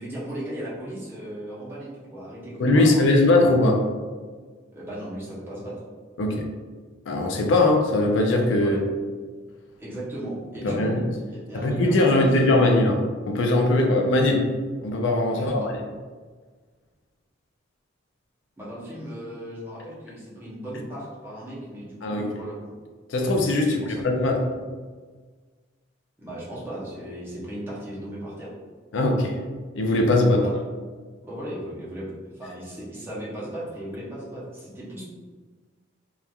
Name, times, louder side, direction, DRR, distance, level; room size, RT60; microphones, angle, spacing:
voice 1, 0.0-3.2 4.7-5.8 8.6-8.8 9.8-12.6 15.3-15.7 18.6-22.7 23.6-24.0 26.2-28.5 30.3-30.5 31.3-35.0, right 1 dB, 10° right, -8 dB, 0.7 m, -36 dB
voice 2, 2.6-3.8 6.2-6.4 7.1-8.8 10.6-11.0 11.5-13.0 13.3-14.4 14.8-15.6 22.0-22.3 23.1-24.4 28.9-29.4 29.7-30.4, left 2 dB, 70° left, 2 dB, 0.4 m, -20 dB
2.9 x 2.3 x 2.3 m, 1.5 s
head